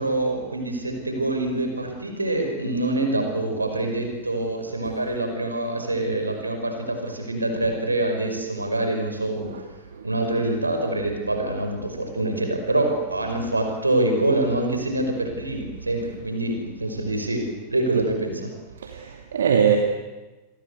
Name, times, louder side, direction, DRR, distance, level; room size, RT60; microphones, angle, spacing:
voice 1, 0.0-9.5 10.0-18.5, right 2 dB, 80° right, 4 dB, 5.6 m, -25 dB
voice 2, 18.8-19.8, right 8 dB, 65° right, 4 dB, 2.4 m, -21 dB
28.5 x 23.0 x 8.2 m, 1.1 s
figure-of-eight pair, 90°, 0 cm